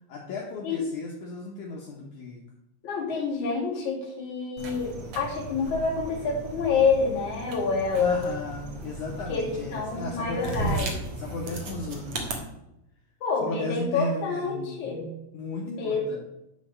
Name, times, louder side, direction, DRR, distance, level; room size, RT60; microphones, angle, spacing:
voice 1, 0.1-2.4 8.0-12.5 13.4-14.8 15.3-16.2, left 2 dB, 80° left, -2 dB, 1.7 m, -35 dB
voice 2, 2.8-8.2 9.3-10.9 13.2-15.1 15.6-16.2, left 4 dB, 50° left, -2 dB, 3.1 m, -27 dB
sound 1, 4.6-12.3, right 2 dB, 85° right, 1.2 m, -36 dB
11.0 x 4.1 x 6.5 m, 0.89 s
omnidirectional pair, 5.0 m